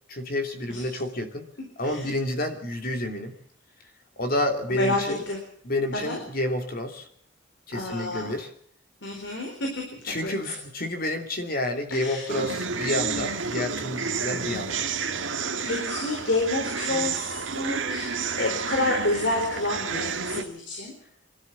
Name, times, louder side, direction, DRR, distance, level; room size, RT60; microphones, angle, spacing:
voice 1, 0.1-1.5 1.8-3.3 4.2-5.2 5.6-7.1 7.7-8.5 10.1-14.8, left 1 dB, 50° left, 5 dB, 2.9 m, -29 dB
voice 2, 4.7-5.4 5.9-6.2 7.7-8.3 9.0-10.5 11.9-12.3 15.3-20.9, left 2 dB, 70° left, 1 dB, 4.1 m, -29 dB
sound 1, 12.3-20.4, right 5 dB, 85° right, 1.7 m, -30 dB
23.0 x 13.0 x 8.6 m, 0.64 s
head